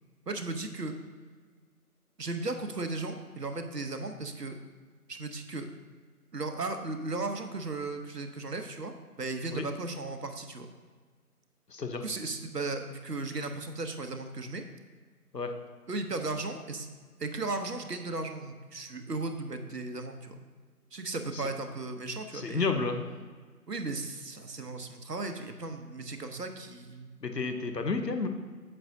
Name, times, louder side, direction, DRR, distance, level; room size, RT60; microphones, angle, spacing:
voice 1, 0.3-1.0 2.2-4.6 5.1-5.7 6.3-8.9 9.2-10.7 12.0-14.6 15.9-16.9 17.2-20.3 20.9-22.7 23.7-27.1, right 3 dB, 80° right, 6 dB, 1.0 m, -36 dB
voice 2, 11.7-12.0 15.3-15.5 21.3-21.4 22.3-23.0 27.2-28.3, left 4 dB, 90° left, 6 dB, 1.0 m, -31 dB
8.8 x 7.0 x 2.7 m, 1.5 s
figure-of-eight pair, 175°, 47 cm